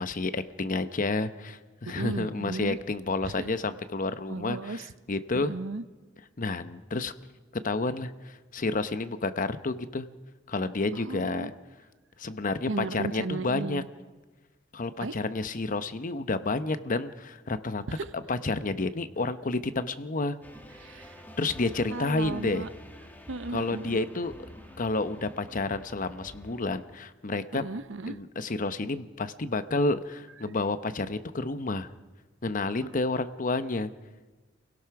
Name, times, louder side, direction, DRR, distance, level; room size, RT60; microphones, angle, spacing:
voice 1, 0.0-4.8 5.1-5.5 6.4-7.1 7.6-10.1 10.5-11.5 12.2-13.8 14.7-17.8 18.3-20.4 21.4-22.7 23.5-24.3 24.8-27.6 28.1-31.9 32.4-33.9, left 3 dB, 45° left, 11 dB, 0.8 m, -30 dB
voice 2, 2.0-2.8 3.2-3.5 4.3-4.9 5.3-5.8 10.9-11.5 12.7-13.9 15.0-15.1 17.9-18.0 20.8-21.2 21.9-22.7 23.3-24.0 27.5-28.2 32.8-33.0, right 3 dB, 75° right, 13 dB, 0.8 m, -35 dB
sound 1, 20.4-26.9, equal, 10° left, 2.1 m, -48 dB
28.5 x 17.5 x 5.9 m, 1.3 s
head